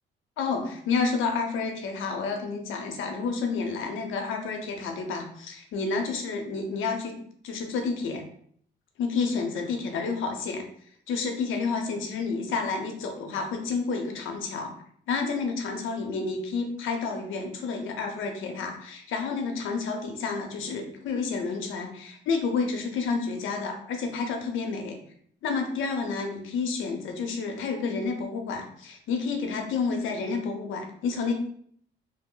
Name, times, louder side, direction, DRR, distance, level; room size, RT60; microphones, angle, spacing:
voice 1, 0.4-7.2 7.4-8.2 9.0-10.6 11.1-14.7 15.1-25.0 25.4-31.3, left 4 dB, 80° left, 3 dB, 0.7 m, -30 dB
2.8 x 2.1 x 3.7 m, 0.63 s
cardioid pair, 90°, 20 cm